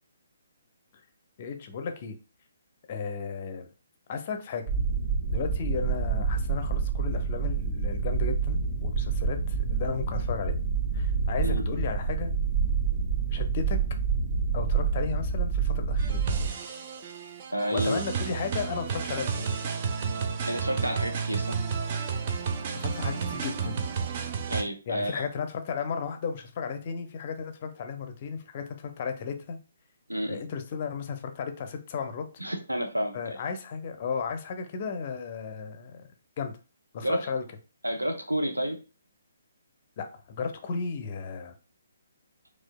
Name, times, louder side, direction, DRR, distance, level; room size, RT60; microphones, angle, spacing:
voice 1, 1.4-2.1 2.9-3.7 4.1-4.6 5.3-10.6 10.9-12.3 13.3-13.8 14.5-16.2 17.7-19.4 22.8-23.8 24.9-29.6 30.3-32.3 33.1-36.0 36.4-36.5 36.9-37.4 40.0-41.5, left 5 dB, 40° left, 7 dB, 0.5 m, -34 dB
sound 1, 4.7-16.5, right 5 dB, 60° right, 1.4 m, -27 dB
sound 2, 16.0-24.6, right 6 dB, 35° right, 0.4 m, -31 dB
voice 2, 17.5-18.0 20.5-21.6 24.5-25.3 30.1-30.4 32.4-33.4 37.0-37.3 37.8-38.8, right 1 dB, 90° right, 4 dB, 0.7 m, -30 dB
4.4 x 2.3 x 2.2 m, 0.33 s
figure-of-eight pair, 135°, 0 cm